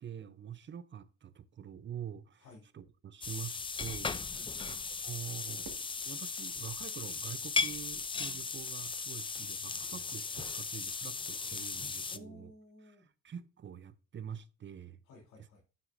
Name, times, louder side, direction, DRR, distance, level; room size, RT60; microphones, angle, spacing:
voice 1, 0.0-2.4 2.7-12.5 12.9-13.0 13.2-15.0, right 9 dB, 40° right, 0.6 m, -46 dB
sound 1, 3.2-12.2, left 4 dB, 15° left, 0.4 m, -37 dB
Fireworks, 5.6-7.9, right 5 dB, 75° right, 1.8 m, -56 dB
voice 2, 12.1-13.1 15.0-15.6, left 1 dB, 85° left, 3.2 m, -54 dB
9.4 x 6.2 x 2.6 m
cardioid pair, 90°, 30 cm